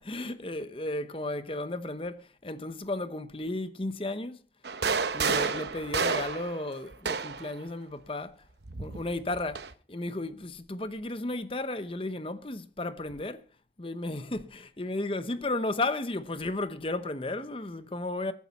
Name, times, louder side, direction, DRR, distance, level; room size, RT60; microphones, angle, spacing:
voice 1, 0.0-4.4 5.1-8.4 8.8-13.4 13.8-18.3, left 2 dB, 30° left, 0.9 m, -34 dB
sound 1, 4.6-7.5 8.7-9.7, right 5 dB, 75° right, 0.9 m, -30 dB
21.5 x 9.5 x 4.1 m
head